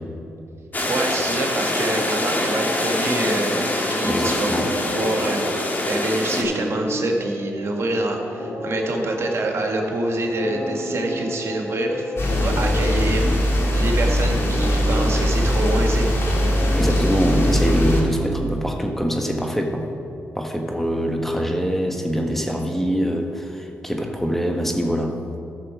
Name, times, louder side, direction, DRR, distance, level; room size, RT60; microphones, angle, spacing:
sound 1, 0.7-6.4, left 1 dB, 35° left, 2.0 m, -25 dB
voice 1, 0.9-3.6 3.9-4.5 4.9-5.5 5.9-16.1, right 2 dB, 55° right, 2 dB, 1.7 m, -26 dB
sound 2, 2.3-18.3, left 1 dB, 85° left, 2.6 m, -32 dB
voice 2, 4.0-4.7 16.7-19.8 20.3-23.4 23.8-25.2, equal, 5° left, 3 dB, 1.5 m, -23 dB
sound 3, 12.2-18.0, equal, 50° left, 2.1 m, -20 dB
14.0 x 6.6 x 4.9 m, 2.6 s
supercardioid pair, 45°, 5 cm